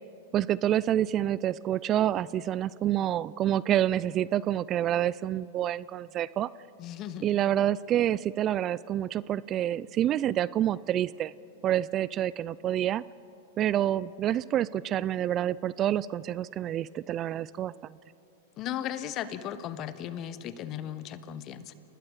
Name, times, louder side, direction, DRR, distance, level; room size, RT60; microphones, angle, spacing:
voice 1, 0.3-6.5 7.2-11.3 11.6-13.0 13.6-17.9, right 11 dB, 35° right, 20 dB, 0.4 m, -28 dB
voice 2, 6.8-7.3 18.6-21.7, left 10 dB, 40° left, 13 dB, 1.3 m, -36 dB
29.5 x 19.5 x 4.9 m, 2.8 s
hypercardioid pair, 105°, 0 cm